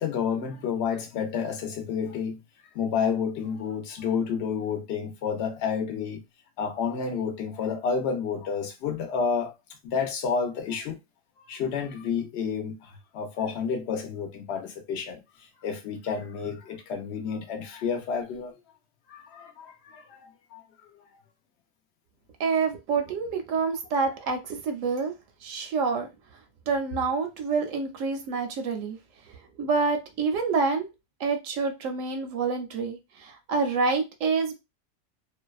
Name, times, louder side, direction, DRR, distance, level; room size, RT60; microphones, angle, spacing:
voice 1, 0.0-2.4 2.7-6.2 6.6-9.5 9.8-11.0 11.4-15.2 15.6-18.6 19.1-21.0, left 6 dB, 65° left, 0.8 m, -30 dB
voice 2, 22.4-26.1 26.7-29.0 29.3-30.9 31.2-34.5, right 4 dB, 80° right, 0.9 m, -27 dB
2.6 x 2.1 x 2.3 m
omnidirectional pair, 1.3 m